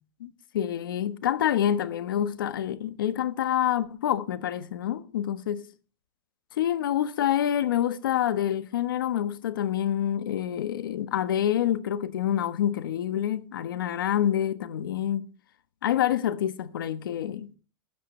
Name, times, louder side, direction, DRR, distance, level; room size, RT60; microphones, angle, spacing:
voice 1, 0.2-5.6 6.6-15.2 15.8-17.6, left 10 dB, 85° left, 1.3 m, -27 dB
15.5 x 14.0 x 3.3 m
supercardioid pair, 145°, 11 cm